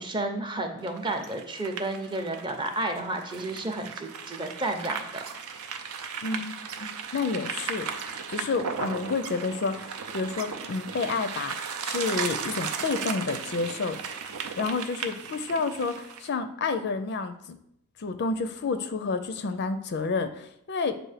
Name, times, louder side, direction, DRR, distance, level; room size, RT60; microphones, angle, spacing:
voice 1, 0.0-5.2, right 2 dB, 20° right, 4 dB, 0.6 m, -31 dB
sound 1, 0.8-16.3, right 6 dB, 75° right, 0.6 m, -36 dB
voice 2, 6.2-11.6 11.8-14.0 14.6-17.6 18.0-21.0, left 4 dB, 50° left, 10 dB, 0.4 m, -30 dB
7.4 x 2.6 x 4.9 m, 0.75 s
head